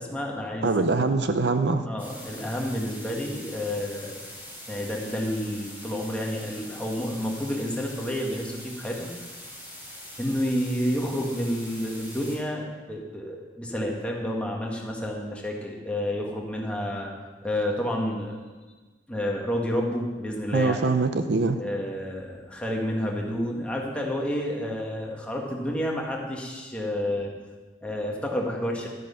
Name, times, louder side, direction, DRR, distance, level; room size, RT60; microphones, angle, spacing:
voice 1, 0.0-0.7 1.9-4.2 4.7-9.1 10.2-17.1 17.4-18.4 19.1-20.9 21.6-27.3 27.8-28.9, equal, 5° left, -1 dB, 1.8 m, -30 dB
voice 2, 0.6-1.9 20.5-21.6, right 3 dB, 65° right, 9 dB, 0.6 m, -23 dB
sound 1, 2.0-12.4, equal, 15° right, 3.8 m, -43 dB
12.0 x 9.2 x 5.8 m, 1.3 s
head